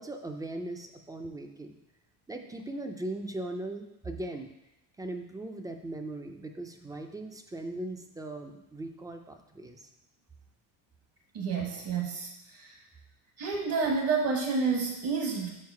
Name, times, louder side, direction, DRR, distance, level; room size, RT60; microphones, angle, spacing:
voice 1, 0.0-1.8 2.3-4.5 5.0-9.9, right 2 dB, 10° right, 5 dB, 0.3 m, -39 dB
voice 2, 11.3-12.8 13.4-15.5, right 4 dB, 55° right, 1 dB, 1.2 m, -29 dB
6.5 x 4.7 x 4.7 m, 0.94 s
cardioid pair, 145°, 41 cm